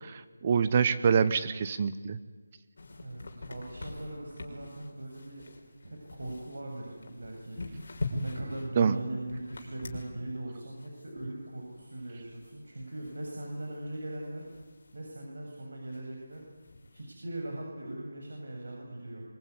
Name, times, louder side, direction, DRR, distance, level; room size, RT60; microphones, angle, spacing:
voice 1, 0.0-2.2 8.8-8.9, right 6 dB, 20° right, 13 dB, 0.8 m, -26 dB
sound 1, 2.8-15.2 15.4-15.5 15.8-17.1, left 2 dB, 50° left, 5.3 m, -44 dB
voice 2, 3.0-5.4 5.8-14.5 14.9-16.4 16.9-19.2, right 1 dB, 75° right, 0 dB, 7.4 m, -40 dB
24.0 x 23.5 x 9.7 m, 1.4 s
figure-of-eight pair, 175°, 0 cm